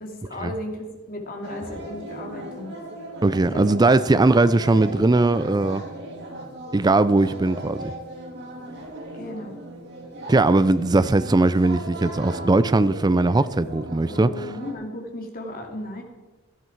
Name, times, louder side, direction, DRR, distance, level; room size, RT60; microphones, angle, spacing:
voice 1, 0.0-2.8 3.5-3.7 9.1-9.6 14.0-16.0, left 1 dB, 40° left, 2.7 m, -35 dB
sound 1, 1.4-14.7, right 1 dB, 50° right, 3.0 m, -37 dB
voice 2, 3.2-5.8 6.7-7.9 10.3-14.5, right 2 dB, 20° right, 0.4 m, -19 dB
16.5 x 13.0 x 4.6 m
head